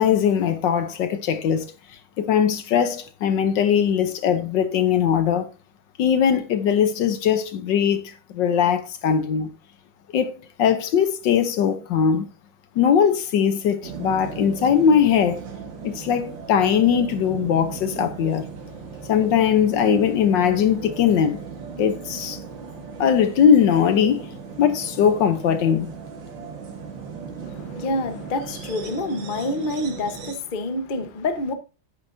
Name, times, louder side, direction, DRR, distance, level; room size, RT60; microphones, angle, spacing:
voice 1, 0.0-1.7 2.2-5.5 6.0-9.5 10.1-12.3 12.8-15.4 15.8-18.5 19.1-21.4 21.8-22.4 23.0-24.3 24.6-25.9, left 8 dB, 65° left, 1.3 m, -20 dB
sound 1, 13.8-30.3, right 5 dB, 65° right, 2.1 m, -37 dB
voice 2, 27.4-31.5, left 2 dB, 40° left, 0.8 m, -27 dB
9.8 x 9.5 x 2.6 m
omnidirectional pair, 2.3 m